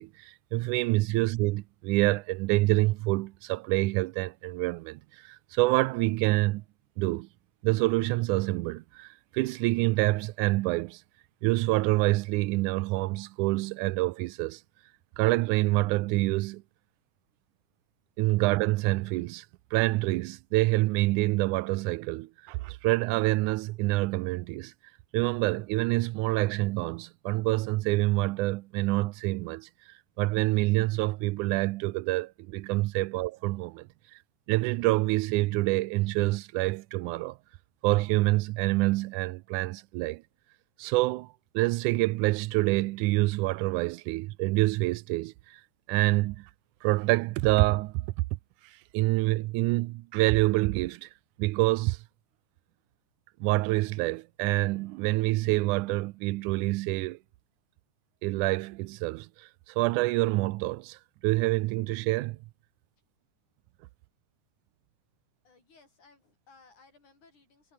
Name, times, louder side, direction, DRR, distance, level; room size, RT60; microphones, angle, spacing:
voice 1, 0.0-6.6 7.0-7.3 7.6-11.0 11.4-14.6 15.2-16.6 18.2-19.5 19.7-24.7 25.1-29.7 30.2-33.9 34.5-37.4 37.8-40.2 40.8-45.6 45.9-46.5 46.8-48.1 48.9-51.1 51.4-52.0 53.4-57.2 58.2-62.4, right 20 dB, 85° right, 2.1 m, -27 dB
voice 2, 65.4-67.7, left 4 dB, 75° left, 8.4 m, -60 dB
omnidirectional pair, 3.5 m